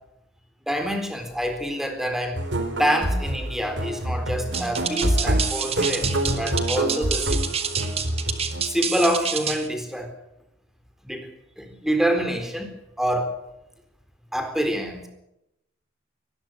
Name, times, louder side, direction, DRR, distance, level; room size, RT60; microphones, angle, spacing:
voice 1, 0.7-2.4 2.8-7.4 8.6-10.1 11.0-11.3 11.6-13.3 14.3-15.1, equal, ahead, 5 dB, 3.9 m, -26 dB
sound 1, 2.3-8.7, right 1 dB, 60° right, 3.8 m, -26 dB
sound 2, 4.5-9.7, right 7 dB, 30° right, 2.2 m, -28 dB
23.5 x 20.0 x 6.4 m, 0.83 s
head